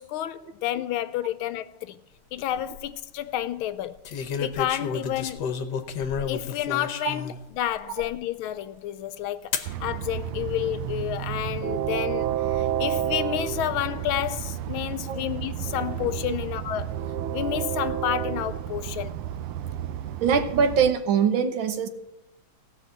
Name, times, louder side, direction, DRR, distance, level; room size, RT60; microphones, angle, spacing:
voice 1, 0.0-2.0 2.3-5.5 6.3-16.9 17.3-19.1, left 12 dB, 75° left, 1.4 m, -30 dB
sound 1, 2.4-2.8 4.0-7.4 8.0-8.1 9.5-9.7 10.6-11.1, left 6 dB, 60° left, 1.3 m, -31 dB
Train, 9.7-20.9, right 11 dB, 85° right, 1.6 m, -31 dB
voice 2, 20.2-21.9, right 6 dB, 70° right, 1.7 m, -22 dB
16.5 x 5.7 x 7.9 m
omnidirectional pair, 2.4 m